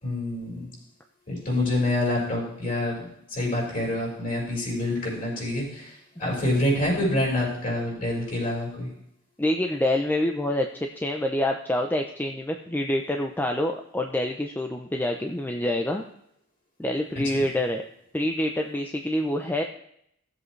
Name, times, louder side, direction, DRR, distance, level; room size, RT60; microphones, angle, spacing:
voice 1, 0.0-0.7 1.3-8.9 17.3-17.4, left 1 dB, 40° left, -3 dB, 5.1 m, -27 dB
voice 2, 9.4-16.0 16.8-17.8 18.1-19.6, left 1 dB, 10° left, 3 dB, 0.5 m, -26 dB
17.0 x 7.6 x 3.2 m, 0.72 s
head